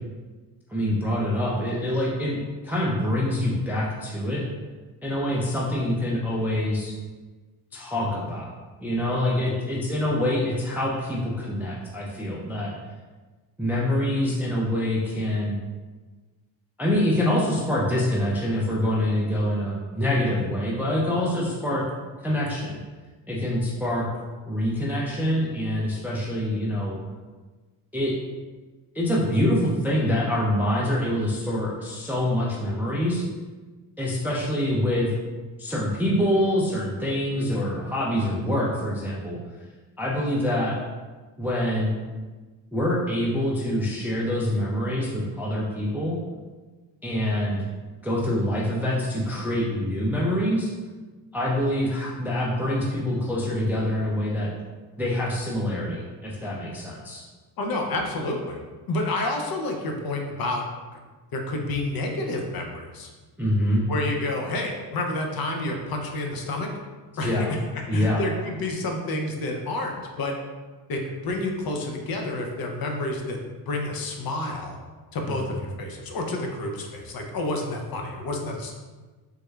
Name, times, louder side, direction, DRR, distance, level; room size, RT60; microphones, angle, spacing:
voice 1, 0.7-4.4 5.0-6.9 7.7-8.5 8.8-12.7 13.6-15.6 16.8-21.8 22.2-22.8 23.3-24.1 24.5-27.0 27.9-28.1 28.9-33.3 34.0-35.1 35.6-39.4 40.0-40.8 41.4-42.0 42.7-46.2 47.0-47.6 48.0-50.7 51.3-54.5 55.0-57.2 63.4-63.8 67.2-67.5 67.9-68.2 75.3-75.4, left 1 dB, 5° right, -4 dB, 0.3 m, -25 dB
voice 2, 57.6-58.6 58.9-60.6 61.3-63.1 63.9-66.7 67.2-67.6 67.9-70.3 70.9-73.4 73.7-74.8 75.1-78.7, left 2 dB, 50° left, 2 dB, 0.6 m, -29 dB
3.5 x 2.2 x 3.1 m, 1.3 s
cardioid pair, 105°, 46 cm